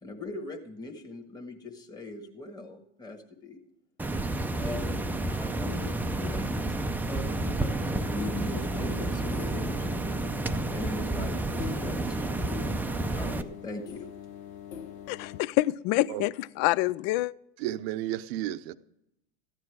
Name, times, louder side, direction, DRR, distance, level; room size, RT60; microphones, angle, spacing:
voice 1, 0.0-3.6 4.6-5.0 5.3-7.3 7.6-9.9 10.7-12.8 13.1-14.1, left 2 dB, 10° left, 1.4 m, -40 dB
sound 1, 4.0-13.4, right 2 dB, 5° right, 0.5 m, -30 dB
sound 2, 7.1-15.4, left 8 dB, 90° left, 1.2 m, -43 dB
voice 2, 15.1-17.3, left 17 dB, 55° left, 0.4 m, -26 dB
voice 3, 17.6-18.7, right 13 dB, 65° right, 0.7 m, -32 dB
14.0 x 9.7 x 4.7 m
supercardioid pair, 115°, 32 cm